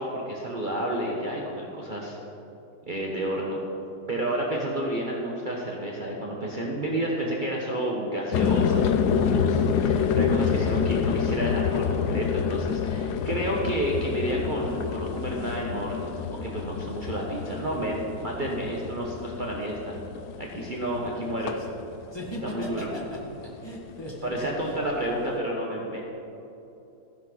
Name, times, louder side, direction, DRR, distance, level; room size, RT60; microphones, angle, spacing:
voice 1, 0.0-2.2 2.9-3.6 4.1-16.1 16.4-19.9 20.4-21.5 22.4-22.9 24.2-26.0, right 1 dB, 35° right, -3 dB, 1.2 m, -30 dB
sound 1, 8.3-22.9 23.1-23.8, left 7 dB, 85° left, 1.2 m, -27 dB
voice 2, 22.1-23.2 23.6-24.8, equal, 15° left, -4 dB, 1.8 m, -37 dB
15.0 x 10.5 x 4.0 m, 3.0 s
omnidirectional pair, 1.7 m